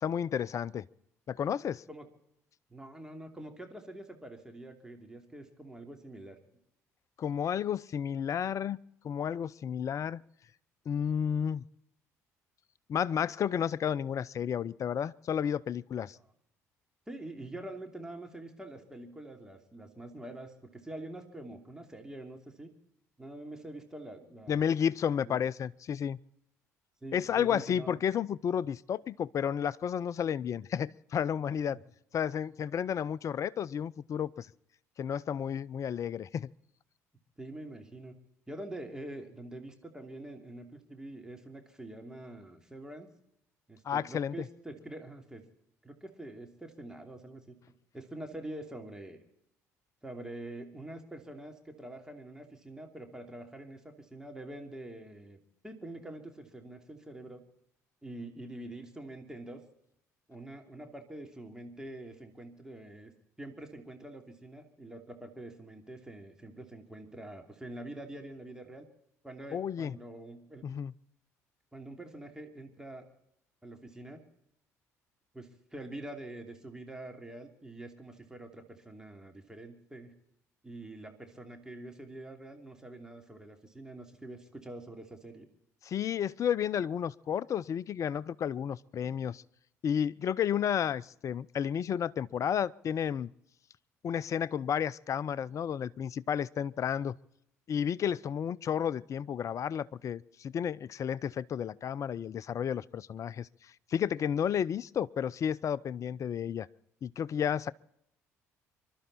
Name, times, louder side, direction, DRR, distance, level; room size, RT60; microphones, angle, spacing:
voice 1, 0.0-0.9 1.3-1.8 7.2-8.8 9.0-10.2 10.9-11.7 12.9-16.2 24.5-26.2 27.1-31.8 32.1-34.5 35.0-36.5 43.8-44.5 69.5-69.9 70.6-70.9 85.8-89.4 89.8-93.3 94.0-97.2 97.7-106.7 107.0-107.7, left 8 dB, 40° left, 0.5 m, -32 dB
voice 2, 2.7-6.4 16.2-16.3 17.1-22.7 23.2-24.6 25.2-25.4 27.0-28.0 37.4-38.1 38.5-43.1 43.7-45.4 45.8-47.6 47.9-49.2 50.0-57.4 58.0-59.6 60.3-63.1 63.4-68.8 69.2-70.6 71.7-73.1 73.6-74.2 75.3-80.1 80.6-85.5, right 1 dB, 10° right, 2.9 m, -45 dB
27.0 x 12.0 x 4.2 m
figure-of-eight pair, 55°, 8 cm